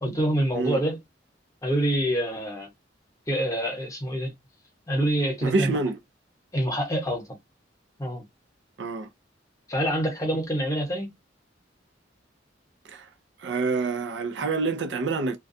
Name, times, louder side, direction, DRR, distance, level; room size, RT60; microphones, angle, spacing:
voice 1, 0.0-1.0 1.6-2.7 3.3-4.3 4.9-5.8 6.5-7.4 8.0-8.2 9.7-11.1, right 1 dB, 20° left, 0.9 m, -26 dB
voice 2, 5.4-6.0 8.8-9.1 12.9-13.1 13.4-15.4, right 3 dB, 70° right, 0.5 m, -27 dB
2.3 x 2.2 x 2.5 m
head